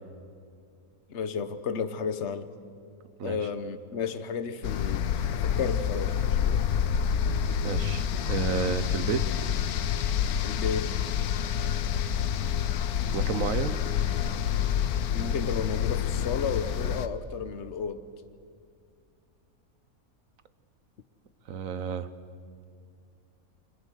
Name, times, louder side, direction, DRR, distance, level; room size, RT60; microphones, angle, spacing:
voice 1, 1.1-2.5 3.2-6.6 10.4-10.9 15.1-18.0, left 6 dB, 55° left, 10 dB, 1.3 m, -33 dB
sound 1, 4.6-17.1, left 8 dB, 85° left, 1.3 m, -28 dB
voice 2, 7.6-9.2 13.1-13.8 21.5-22.1, right 6 dB, 65° right, 12 dB, 1.4 m, -31 dB
29.0 x 25.5 x 6.5 m, 2.3 s
omnidirectional pair, 1.5 m